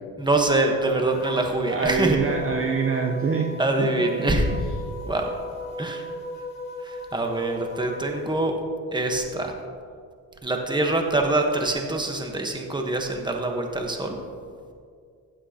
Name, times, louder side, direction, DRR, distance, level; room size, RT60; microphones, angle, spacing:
voice 1, 0.2-2.2 3.6-4.4 5.1-5.3 5.8-6.0 6.8-8.5 8.9-9.5 10.4-14.2, right 2 dB, 10° right, 3 dB, 1.1 m, -24 dB
sound 1, 1.1-8.3, equal, 25° left, 2.5 m, -37 dB
voice 2, 1.7-3.5 3.8-4.1, right 5 dB, 35° right, 2 dB, 0.7 m, -25 dB
15.0 x 7.5 x 2.8 m, 2.1 s
cardioid pair, 120°, 36 cm